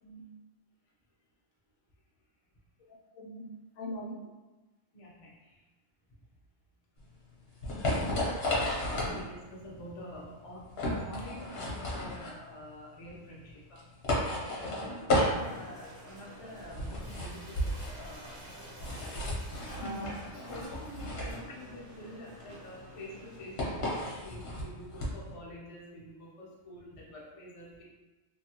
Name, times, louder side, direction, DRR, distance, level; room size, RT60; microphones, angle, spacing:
voice 1, 3.1-3.5 3.8-4.2 7.6-8.1 9.0-9.2 14.7-14.9 19.8-20.1, equal, 80° left, -1 dB, 1.0 m, -42 dB
voice 2, 4.9-5.5 8.1-13.8 14.6-18.3 18.8-19.2 19.8-27.9, equal, 35° left, -5 dB, 0.5 m, -47 dB
sound 1, 7.0-25.3, left 1 dB, 55° left, 0.9 m, -34 dB
sound 2, 15.1-23.6, right 1 dB, 65° right, 1.0 m, -52 dB
Crumpling crinkling, 16.9-21.4, equal, 90° right, 1.4 m, -53 dB
3.0 x 2.2 x 2.8 m, 1.2 s
omnidirectional pair, 1.4 m